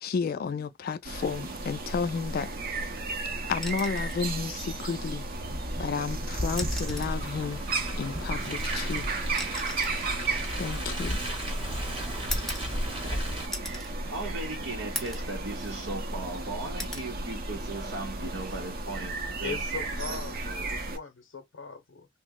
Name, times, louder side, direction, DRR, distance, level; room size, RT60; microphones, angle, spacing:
voice 1, 0.0-2.5 3.5-5.2 5.8-7.6 8.0-9.1 10.6-11.2 11.9-12.0, left 5 dB, 50° left, 0.3 m, -32 dB
sound 1, 1.0-21.0, right 2 dB, 50° right, 0.6 m, -34 dB
sound 2, 3.6-4.3 5.7-5.8 6.5-7.2 8.4-11.5 12.3-13.1 13.5-13.9 14.4-14.5 15.0-15.3 15.8-16.4 16.8-17.1 18.6-18.8, left 2 dB, ahead, 0.5 m, -39 dB
Car, 5.3-13.5, equal, 25° right, 1.0 m, -34 dB
voice 2, 13.0-19.6 20.1-20.2, right 2 dB, 90° right, 0.8 m, -38 dB
voice 3, 19.4-22.1, left 5 dB, 80° left, 0.6 m, -40 dB
2.9 x 2.0 x 3.5 m
head